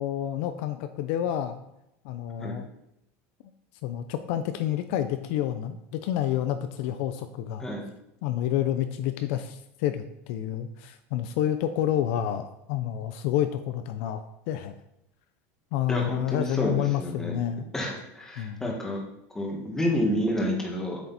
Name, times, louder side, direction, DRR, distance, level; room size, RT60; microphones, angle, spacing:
voice 1, 0.0-1.6 2.0-2.7 3.8-7.7 8.2-14.7 15.7-17.7 18.4-18.7, left 11 dB, 60° left, 9 dB, 0.6 m, -29 dB
voice 2, 15.9-17.3 17.7-19.0 19.3-21.0, equal, 5° left, -1 dB, 1.7 m, -29 dB
7.9 x 6.9 x 4.2 m, 0.83 s
supercardioid pair, 160°, 7 cm